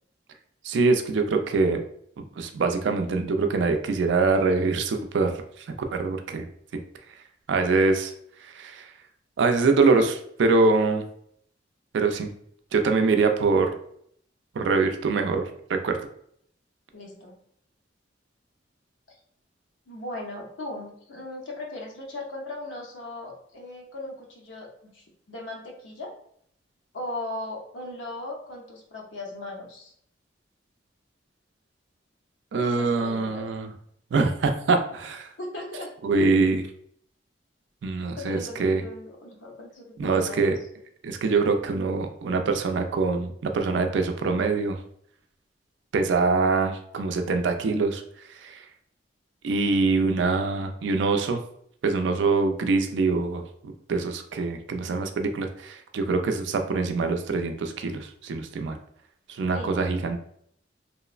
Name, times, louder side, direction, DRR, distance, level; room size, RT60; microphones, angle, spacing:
voice 1, 0.6-1.8 2.2-5.3 5.9-6.5 7.5-8.1 8.6-8.8 9.4-11.0 11.9-12.3 12.7-13.7 14.6-15.4 15.7-16.0 32.5-33.7 34.1-35.3 36.0-36.6 37.8-38.8 40.0-40.6 41.0-44.8 45.9-48.0 48.4-48.5 49.4-51.4 51.8-58.8 59.4-60.2, right 4 dB, 70° right, 6 dB, 0.4 m, -24 dB
voice 2, 16.9-17.3 19.9-26.1 26.9-29.9 32.6-33.4 35.4-35.9 38.1-40.5 59.5-59.8, left 2 dB, 90° left, -1 dB, 0.7 m, -38 dB
2.9 x 2.0 x 2.3 m, 0.67 s
head